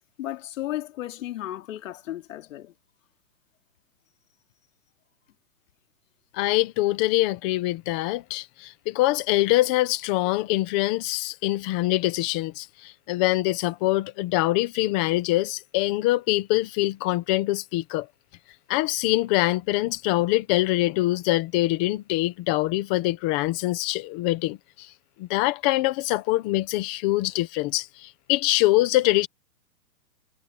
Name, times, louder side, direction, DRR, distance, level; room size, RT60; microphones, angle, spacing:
voice 1, 0.2-2.7, left 14 dB, 55° left, 2.6 m, -34 dB
voice 2, 6.3-18.1 18.7-24.9 25.2-29.3, left 18 dB, 5° left, 0.4 m, -24 dB
hypercardioid pair, 130°, 47 cm